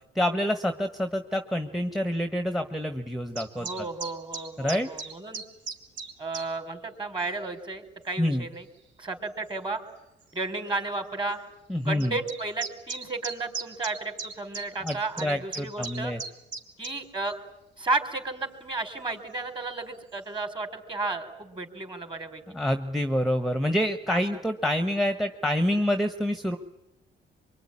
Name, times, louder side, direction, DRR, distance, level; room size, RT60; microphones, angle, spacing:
voice 1, 0.1-3.7 4.6-4.9 8.2-8.5 11.7-12.1 14.8-16.2 22.5-26.6, equal, ahead, 8 dB, 1.5 m, -27 dB
sound 1, 3.4-6.5 7.2-7.4 8.2-8.3 9.5-9.6 9.9-10.0 10.2-10.3 12.0-17.0, right 4 dB, 65° right, 3.3 m, -37 dB
voice 2, 3.6-5.4 6.2-8.7 9.0-9.8 10.3-11.4 11.8-16.1 16.8-17.4 17.8-22.4 24.1-24.2, right 3 dB, 25° right, 7 dB, 4.2 m, -33 dB
24.5 x 24.0 x 10.0 m, 0.87 s
cardioid pair, 90°, 20 cm